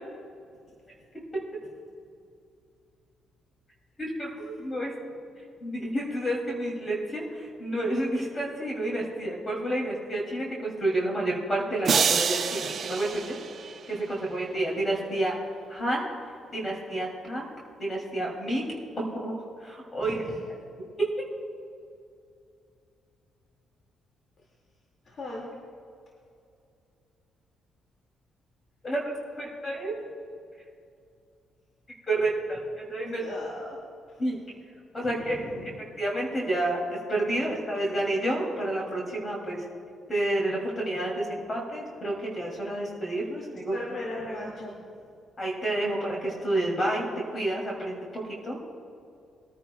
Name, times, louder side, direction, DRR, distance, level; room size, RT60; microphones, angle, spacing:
voice 1, 4.0-4.9 5.6-13.4 13.9-15.4 15.7-16.1 16.5-17.5 17.8-18.7 19.0-20.2 28.8-29.9 32.1-33.2 34.2-34.4 34.9-35.7 36.0-39.7 40.1-43.8 45.4-47.1 47.3-48.6, right 1 dB, 30° left, -2 dB, 2.7 m, -30 dB
sound 1, 11.8-14.1, right 6 dB, 55° right, 0.7 m, -27 dB
voice 2, 20.0-20.4 25.1-25.4 33.1-33.8 34.1-34.2 35.0-35.7 41.3-41.5 43.7-44.7, left 1 dB, 50° left, -2 dB, 2.2 m, -38 dB
21.5 x 9.9 x 2.3 m, 2.5 s
cardioid pair, 90°, 0 cm